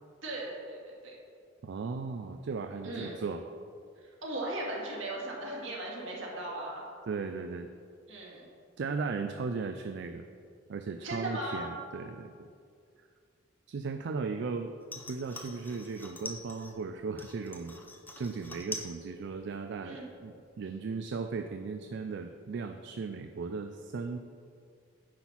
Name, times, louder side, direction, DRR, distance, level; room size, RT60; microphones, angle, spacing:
voice 1, 0.2-1.1 2.8-3.2 4.0-6.8 8.1-8.4 11.0-11.7 19.8-20.1, right 1 dB, 75° right, -3 dB, 2.1 m, -38 dB
voice 2, 1.6-3.5 7.1-7.7 8.8-10.3 10.7-12.5 13.7-14.7 15.1-17.7 18.2-24.2, right 4 dB, 60° right, 7 dB, 0.4 m, -36 dB
sound 1, 14.8-16.8 17.2-19.0 19.3-19.8 20.2-20.3, left 2 dB, 10° left, 0.7 m, -44 dB
9.7 x 4.3 x 5.8 m, 2.3 s
head